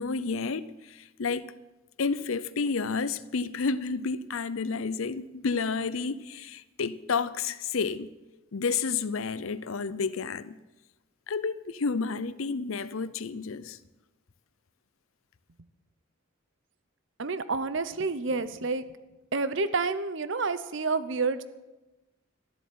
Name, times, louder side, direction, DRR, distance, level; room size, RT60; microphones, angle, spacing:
voice 1, 0.0-1.5 2.0-8.1 8.5-10.6 11.3-13.8, left 4 dB, 75° left, 0.6 m, -30 dB
voice 2, 17.2-18.8 19.3-21.4, right 4 dB, 60° right, 0.7 m, -29 dB
13.0 x 7.8 x 9.3 m
head